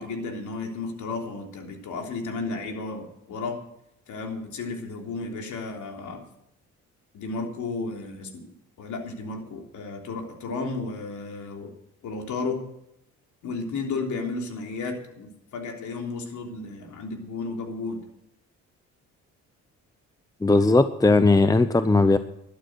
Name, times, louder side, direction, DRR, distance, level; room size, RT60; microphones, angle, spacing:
voice 1, 0.0-3.6 4.1-6.2 7.1-8.4 8.8-11.7 12.0-12.6 13.4-18.0, left 3 dB, 75° left, 3 dB, 3.4 m, -33 dB
voice 2, 20.4-22.2, left 2 dB, 10° left, 11 dB, 0.8 m, -18 dB
12.5 x 12.0 x 6.2 m, 0.79 s
cardioid pair, 90°, 30 cm